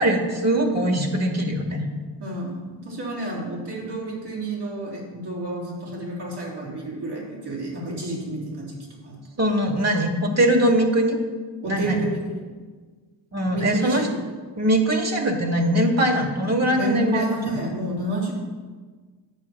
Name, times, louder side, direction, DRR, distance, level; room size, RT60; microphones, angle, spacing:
voice 1, 0.0-1.9 9.4-11.2 11.6-12.1 13.3-14.1 14.6-17.4, right 1 dB, 35° right, 2 dB, 2.0 m, -21 dB
voice 2, 2.2-9.2 11.6-12.5 13.5-14.2 16.7-18.3, right 1 dB, 70° right, -3 dB, 3.4 m, -30 dB
9.7 x 7.5 x 5.9 m, 1.4 s
cardioid pair, 75°, 42 cm